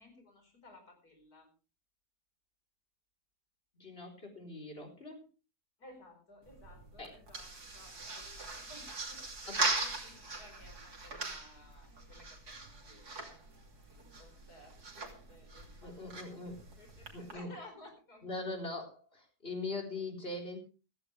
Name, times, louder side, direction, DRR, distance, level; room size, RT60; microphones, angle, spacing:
voice 1, 0.0-1.5 5.8-12.4 12.8-13.3 13.6-16.2 16.8-18.3, left 1 dB, 75° left, 4 dB, 5.4 m, -57 dB
voice 2, 3.7-5.2 7.0-7.2 9.5-9.8 15.8-16.6 17.1-17.5 18.2-20.6, left 2 dB, 35° left, 1 dB, 4.4 m, -41 dB
sound 1, 6.4-17.3, right 3 dB, 85° right, 3.5 m, -40 dB
15.5 x 15.0 x 3.4 m, 0.33 s
omnidirectional pair, 1.6 m